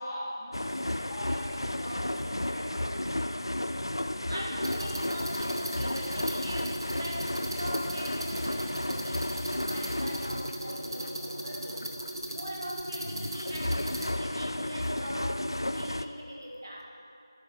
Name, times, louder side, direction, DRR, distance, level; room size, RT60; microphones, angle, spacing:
voice 1, 0.0-3.0, equal, 15° left, -10 dB, 1.0 m, -40 dB
sound 1, 0.5-12.5 12.8-16.1, left 1 dB, 70° left, 0.3 m, -33 dB
voice 2, 4.0-11.9 12.3-16.8, equal, 40° right, -2 dB, 1.0 m, -41 dB
sound 2, 4.6-14.1, right 1 dB, 65° right, 1.0 m, -38 dB
11.0 x 6.2 x 3.2 m, 2.5 s
figure-of-eight pair, 170°, 2 cm